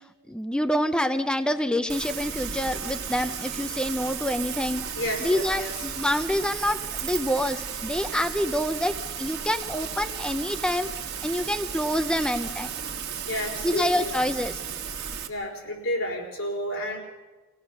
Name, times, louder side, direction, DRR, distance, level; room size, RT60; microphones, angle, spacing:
voice 1, 0.3-4.8 5.2-10.9 11.2-12.7 13.6-14.6, left 1 dB, 5° left, 8 dB, 0.6 m, -27 dB
Rain, 1.9-15.3, right 7 dB, 55° right, 1.7 m, -34 dB
voice 2, 4.9-5.8 13.3-14.1 15.3-17.0, left 1 dB, 85° left, 0 dB, 4.7 m, -31 dB
24.0 x 17.0 x 6.5 m, 1.3 s
head